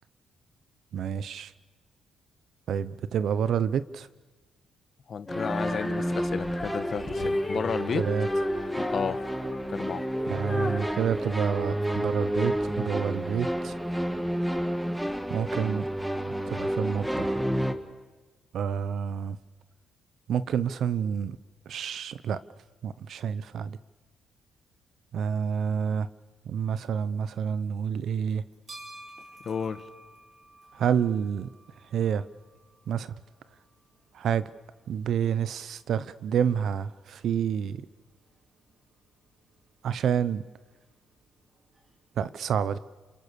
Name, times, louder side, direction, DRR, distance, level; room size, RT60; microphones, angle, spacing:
voice 1, 0.9-1.5 2.7-4.1 7.9-8.3 10.3-13.8 15.3-15.9 16.2-17.3 18.5-19.4 20.3-21.4 21.7-22.4 22.8-23.8 25.1-26.1 26.4-28.4 30.7-31.5 31.9-32.2 32.9-33.1 34.1-34.5 34.9-37.9 39.8-40.4 42.2-42.8, right 8 dB, 65° right, 15 dB, 1.0 m, -28 dB
voice 2, 5.1-8.1 8.8-9.2 9.7-10.0 29.4-29.8, left 6 dB, 50° left, 12 dB, 1.4 m, -32 dB
Female singing, 5.2-12.3, left 2 dB, 15° left, 6.2 m, -35 dB
sound 1, 5.3-17.7, right 1 dB, 5° right, 1.9 m, -30 dB
sound 2, 28.3-42.2, right 2 dB, 50° right, 6.5 m, -55 dB
28.0 x 27.0 x 7.0 m, 1.3 s
cardioid pair, 90°, 0 cm